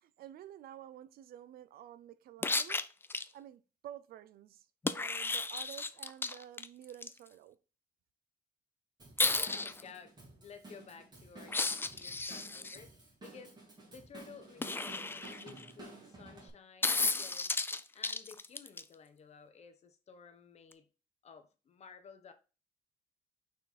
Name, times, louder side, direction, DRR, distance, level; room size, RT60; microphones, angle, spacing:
voice 1, 0.0-2.8 3.3-7.6, right 11 dB, 80° right, 0.6 m, -51 dB
sound 1, 2.4-3.2 4.8-7.1 9.2-9.8 11.5-12.8 14.6-15.7 16.8-18.8 20.7-20.8, left 3 dB, 15° left, 0.4 m, -33 dB
Drum kit / Drum, 9.0-16.5, right 3 dB, 25° right, 2.8 m, -53 dB
voice 2, 9.3-12.9 13.2-13.6 13.9-17.6 17.9-20.8 21.2-22.3, left 6 dB, 45° left, 1.1 m, -54 dB
6.0 x 4.5 x 4.1 m
cardioid pair, 125°, 15 cm